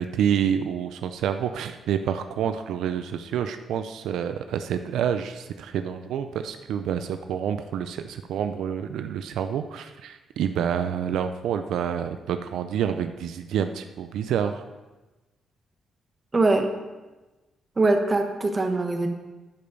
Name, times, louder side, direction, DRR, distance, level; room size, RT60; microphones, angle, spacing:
voice 1, 0.0-14.6, right 8 dB, 85° right, 8 dB, 0.4 m, -28 dB
voice 2, 16.3-16.7 17.8-19.1, right 2 dB, 30° right, 5 dB, 1.2 m, -22 dB
11.5 x 5.2 x 5.3 m, 1.1 s
cardioid pair, 95°, 0 cm